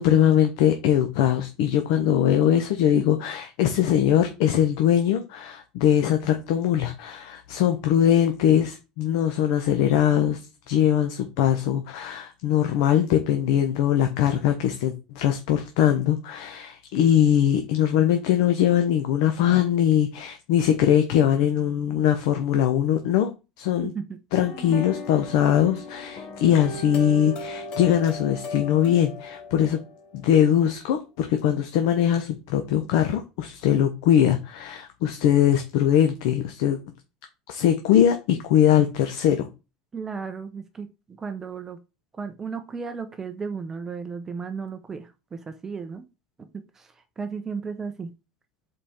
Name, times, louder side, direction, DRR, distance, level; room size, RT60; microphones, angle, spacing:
voice 1, 0.0-23.9 24.3-29.8 30.1-36.8 37.5-39.5, left 10 dB, 70° left, 0.9 m, -21 dB
sound 1, 24.3-30.3, left 3 dB, 40° left, 1.1 m, -36 dB
voice 2, 24.5-24.8 39.9-41.8 42.1-46.0 46.5-48.1, right 5 dB, 15° right, 0.6 m, -35 dB
5.2 x 4.3 x 4.3 m
supercardioid pair, 150°, 3 cm